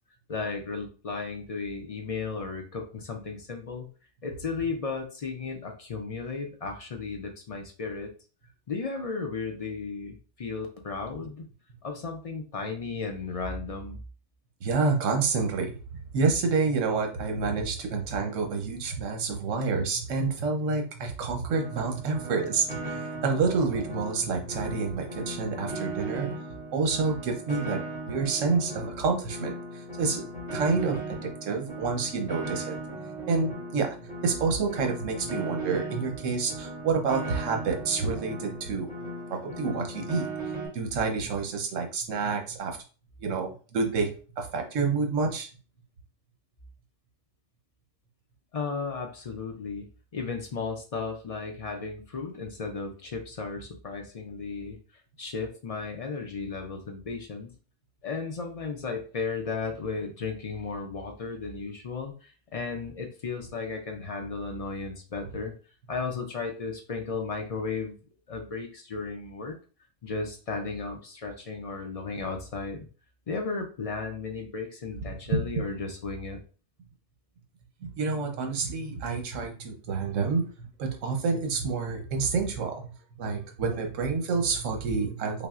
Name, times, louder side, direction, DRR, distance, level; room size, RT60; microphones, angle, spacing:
voice 1, 0.3-3.9 4.2-8.1 8.7-11.5 11.8-14.0 48.5-49.9 50.1-54.8 55.2-57.5 58.0-65.5 65.9-68.0 68.3-69.6 70.0-72.9 73.3-76.4, left 4 dB, 65° left, 3 dB, 0.3 m, -34 dB
voice 2, 14.6-26.3 26.7-32.8 33.3-33.9 34.2-38.9 39.3-40.3 40.7-42.8 43.2-45.5 77.8-82.9 83.2-85.5, right 4 dB, 80° right, 3 dB, 1.1 m, -28 dB
Piano, 21.5-40.7, right 2 dB, 60° right, 2.3 m, -37 dB
5.6 x 2.0 x 2.4 m, 0.37 s
omnidirectional pair, 1.3 m